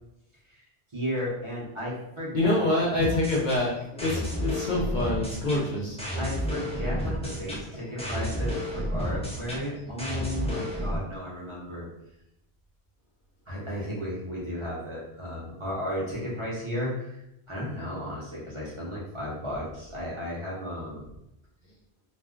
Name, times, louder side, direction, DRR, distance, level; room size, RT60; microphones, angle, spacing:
voice 1, 0.9-2.5 6.1-11.9 13.5-21.0, equal, 30° right, -7 dB, 0.8 m, -34 dB
voice 2, 2.3-6.0, left 2 dB, 50° left, -3 dB, 0.7 m, -26 dB
sound 1, 3.0-11.0, equal, 10° left, 0.4 m, -31 dB
2.4 x 2.3 x 3.6 m, 0.84 s
omnidirectional pair, 1.1 m